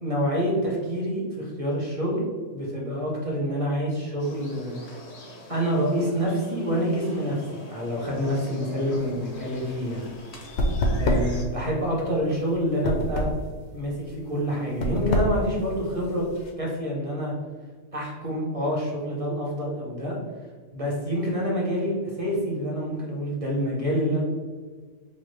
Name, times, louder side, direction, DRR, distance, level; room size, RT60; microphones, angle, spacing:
voice 1, 0.0-2.2 2.5-5.0 5.5-10.1 11.0-13.3 13.7-16.2 16.6-17.3 17.9-20.2 20.7-24.2, equal, 30° right, -3 dB, 0.8 m, -27 dB
sound 1, 4.2-11.4, left 1 dB, 85° left, 0.3 m, -44 dB
sound 2, 9.0-16.5, equal, 65° left, 0.8 m, -27 dB
5.5 x 2.3 x 3.2 m, 1.5 s
omnidirectional pair, 1.6 m